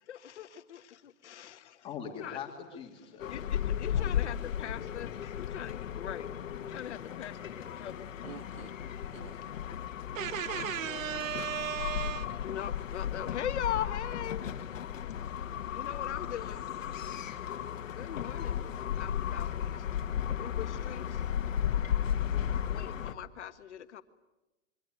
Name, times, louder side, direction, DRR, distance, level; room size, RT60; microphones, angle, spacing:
voice 1, 0.1-1.9 2.2-2.4 3.3-6.3 6.6-8.7 10.2-11.3 12.4-14.4 15.7-16.7 17.9-19.8 20.4-21.3 22.7-24.0, left 10 dB, 60° left, 1.7 m, -41 dB
voice 2, 1.8-3.5 3.9-4.8, left 7 dB, 15° left, 2.6 m, -44 dB
sound 1, 3.2-23.1, left 9 dB, 80° left, 1.8 m, -35 dB
voice 3, 8.2-8.7 9.1-9.3 10.1-12.4, right 10 dB, 85° right, 1.0 m, -36 dB
26.0 x 23.5 x 9.1 m
hypercardioid pair, 170°, 39 cm